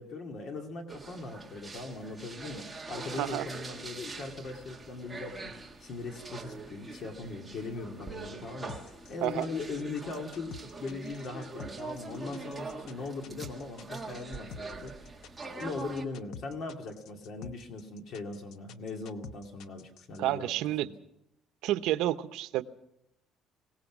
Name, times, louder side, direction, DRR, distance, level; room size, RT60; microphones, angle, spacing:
voice 1, 0.0-8.7 9.1-14.9 15.5-20.5 20.8-20.9, left 3 dB, 45° left, 4 dB, 2.3 m, -40 dB
sound 1, 0.9-16.0, right 3 dB, 10° right, 1.7 m, -43 dB
voice 2, 3.1-3.5 9.2-9.5 20.2-20.9 21.6-22.6, right 14 dB, 80° right, 12 dB, 0.9 m, -30 dB
sound 2, 8.7-20.2, left 6 dB, 65° left, 0.9 m, -48 dB
24.0 x 18.0 x 6.1 m, 0.82 s
cardioid pair, 175°, 0 cm